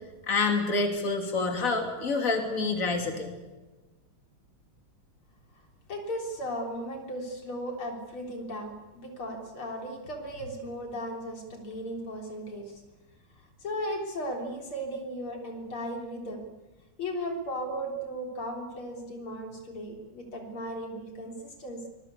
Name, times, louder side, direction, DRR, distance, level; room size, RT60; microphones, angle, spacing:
voice 1, 0.3-3.3, left 3 dB, 40° left, 3 dB, 3.5 m, -27 dB
voice 2, 5.9-12.8 13.6-16.4 17.0-21.9, equal, 85° left, 2 dB, 4.6 m, -36 dB
24.5 x 22.0 x 8.4 m, 1.2 s
omnidirectional pair, 2.3 m